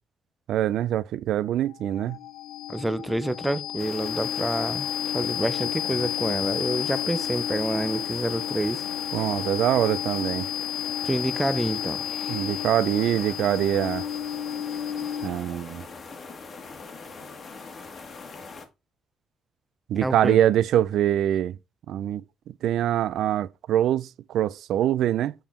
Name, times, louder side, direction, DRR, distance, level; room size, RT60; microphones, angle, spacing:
voice 1, 0.5-2.2 9.1-10.5 12.3-14.0 15.2-15.8 19.9-21.5 21.9-22.2 22.6-25.3, right 11 dB, 80° right, 0.3 m, -24 dB
sound 1, 1.7-15.6, left 11 dB, 70° left, 0.6 m, -31 dB
voice 2, 2.7-8.8 11.0-12.5 19.9-20.4, right 1 dB, 10° right, 0.5 m, -28 dB
sound 2, 3.8-18.7, left 4 dB, 45° left, 1.3 m, -42 dB
7.2 x 3.6 x 4.2 m
cardioid pair, 90°, 0 cm